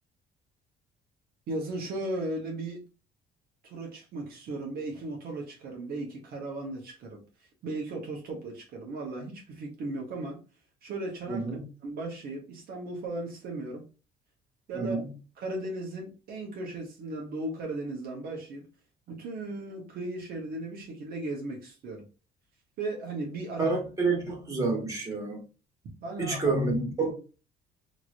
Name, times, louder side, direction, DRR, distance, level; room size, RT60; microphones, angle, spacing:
voice 1, 1.5-2.8 3.6-7.2 7.6-10.4 10.8-11.4 11.8-13.8 14.7-15.0 15.4-18.6 19.1-22.0 22.8-23.7 26.0-26.6, right 2 dB, 65° right, 1.2 m, -36 dB
voice 2, 11.3-11.6 14.7-15.1 23.6-25.4 26.2-27.1, right 3 dB, 20° right, 1.6 m, -28 dB
3.1 x 2.9 x 2.6 m
cardioid pair, 110°, 17 cm